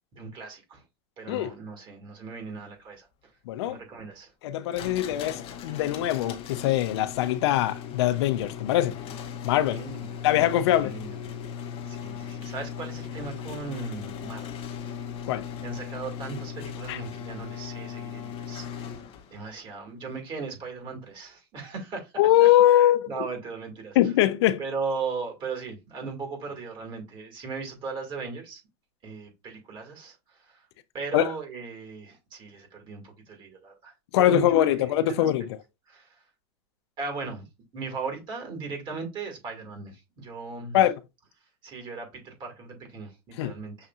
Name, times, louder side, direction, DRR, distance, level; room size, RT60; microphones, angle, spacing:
voice 1, 0.1-0.8 1.2-3.1 3.7-4.3 9.7-10.3 10.7-11.2 11.9-14.5 14.9-15.1 15.6-18.9 19.3-22.1 22.4-24.0 24.6-28.6 29.0-30.7 30.9-35.3 35.9-36.2 37.0-37.4 37.7-40.8 41.6-43.9, right 4 dB, 35° right, 2.0 m, -38 dB
voice 2, 3.5-3.8 4.4-9.0 9.4-9.8 10.2-10.9 15.2-15.5 16.9-17.0 22.2-23.2 24.0-24.6 31.1-31.3 34.1-35.6 40.7-41.0 43.4-43.6, left 12 dB, 80° left, 0.5 m, -22 dB
sound 1, 4.7-19.4, left 8 dB, 40° left, 0.9 m, -38 dB
6.4 x 2.7 x 2.3 m
supercardioid pair, 125°, 14 cm